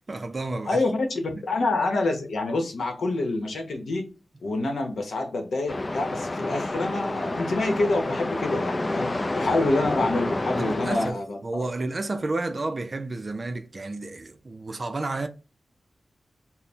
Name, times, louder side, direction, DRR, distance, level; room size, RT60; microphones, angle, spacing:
voice 1, 0.1-0.8 9.4-9.5 10.5-15.3, right 2 dB, 45° right, 0.5 m, -31 dB
voice 2, 0.7-4.1 4.4-11.6, left 2 dB, 85° left, 0.8 m, -27 dB
sound 1, 5.7-11.1, left 2 dB, 30° left, 0.4 m, -29 dB
4.2 x 2.1 x 3.4 m
cardioid pair, 70°, 0 cm